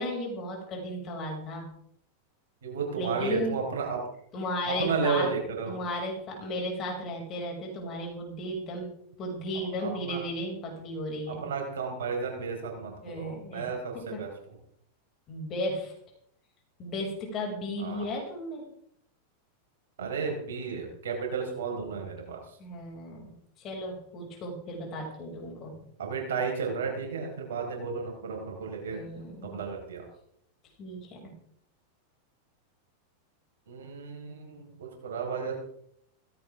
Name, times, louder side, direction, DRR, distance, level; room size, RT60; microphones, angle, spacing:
voice 1, 0.0-1.7 3.0-3.6 4.3-5.3 5.7-8.9 9.2-11.4 13.0-13.6 13.9-14.2 15.3-15.9 16.8-18.6 22.6-25.8 28.9-29.6 30.8-31.3, left 1 dB, 30° left, -1 dB, 6.4 m, -35 dB
voice 2, 2.6-4.0 4.6-5.7 9.8-10.2 11.3-14.3 17.8-18.1 20.0-22.4 26.0-29.1 29.5-30.1 33.7-35.6, right 5 dB, 60° right, 1 dB, 5.0 m, -33 dB
17.5 x 16.0 x 3.7 m, 0.69 s
figure-of-eight pair, 90°, 0 cm